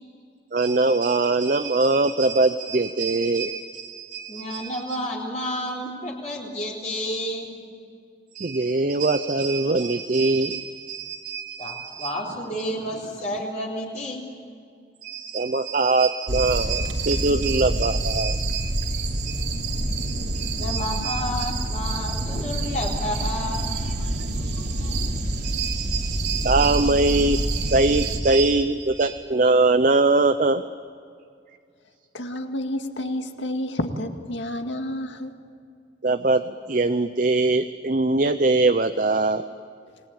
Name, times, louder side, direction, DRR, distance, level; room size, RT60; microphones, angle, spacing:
voice 1, 0.5-4.8 8.3-12.2 15.0-18.7 19.1-19.4 19.7-21.5 25.4-30.6 36.0-39.4, right 3 dB, 45° right, 9 dB, 0.7 m, -23 dB
voice 2, 4.3-7.6 11.6-14.2 20.6-25.0, equal, 40° left, -3 dB, 3.9 m, -31 dB
sound 1, 16.3-28.2, right 1 dB, 65° right, 3.0 m, -27 dB
voice 3, 32.1-35.4, left 1 dB, 80° left, 5 dB, 2.1 m, -30 dB
27.5 x 20.0 x 8.9 m, 2.3 s
head